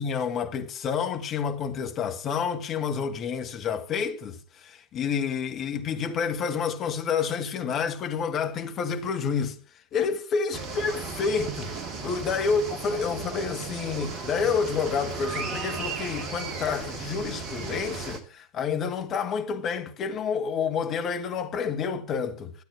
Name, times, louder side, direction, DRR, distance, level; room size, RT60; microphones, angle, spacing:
voice 1, 0.0-9.6 9.9-22.6, left 6 dB, 30° left, 1.7 m, -29 dB
sound 1, 10.5-18.2, right 4 dB, 30° right, 2.3 m, -35 dB
13.0 x 8.8 x 7.1 m
figure-of-eight pair, 90°, 0 cm